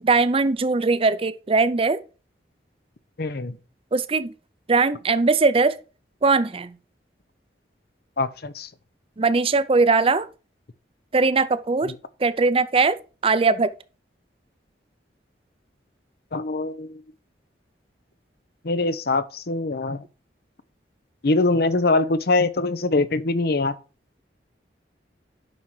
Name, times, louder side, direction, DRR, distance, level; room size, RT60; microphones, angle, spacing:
voice 1, 0.0-2.0 3.9-4.3 4.7-5.8 6.2-6.7 9.2-10.3 11.1-11.9 12.2-13.0 13.2-13.7, right 4 dB, 30° right, 0.5 m, -20 dB
voice 2, 3.2-3.6 8.2-8.7 11.8-12.0 16.3-17.0 18.6-20.0 21.2-23.7, left 2 dB, 60° left, 0.7 m, -23 dB
9.4 x 5.9 x 4.8 m
head